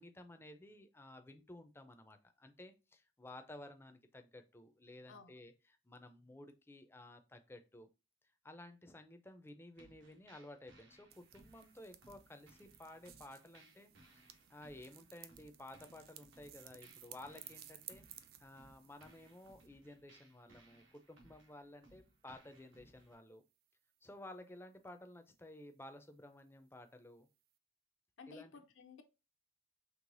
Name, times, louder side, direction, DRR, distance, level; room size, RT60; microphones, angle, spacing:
voice 1, 0.0-5.5 5.9-7.9 8.4-23.4 24.0-27.3 28.3-28.5, left 1 dB, 10° left, 0.4 m, -54 dB
sound 1, 9.8-23.1, right 2 dB, 80° right, 1.3 m, -66 dB
sound 2, 11.1-19.7, right 11 dB, 50° right, 0.4 m, -58 dB
voice 2, 28.2-29.0, left 4 dB, 80° left, 0.6 m, -55 dB
4.7 x 3.2 x 2.6 m
head